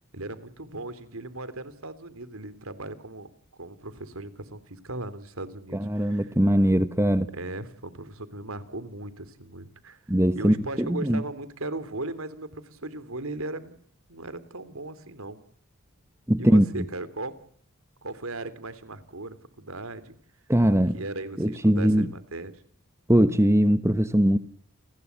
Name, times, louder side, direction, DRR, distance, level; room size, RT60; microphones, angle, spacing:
voice 1, 0.1-3.3 3.6-6.3 7.3-10.0 10.3-13.8 14.1-15.4 16.4-17.3 18.0-20.2 20.7-22.5, right 2 dB, 80° right, 3.3 m, -37 dB
voice 2, 5.7-7.3 10.1-11.2 16.3-16.7 20.5-21.0 21.4-22.1 23.1-24.4, equal, 15° right, 1.2 m, -21 dB
30.0 x 21.0 x 8.3 m
head